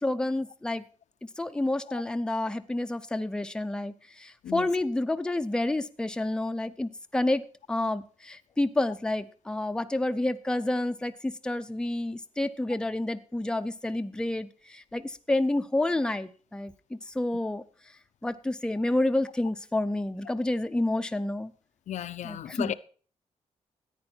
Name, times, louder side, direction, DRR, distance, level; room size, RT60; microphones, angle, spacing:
voice 1, 0.0-0.8 1.4-3.9 4.2-7.4 7.7-16.7 17.1-17.6 18.2-21.5 22.2-22.7, left 2 dB, 5° left, 0.6 m, -29 dB
voice 2, 21.9-22.7, left 11 dB, 75° left, 0.6 m, -34 dB
14.0 x 9.7 x 4.4 m
wide cardioid pair, 135°, 12 cm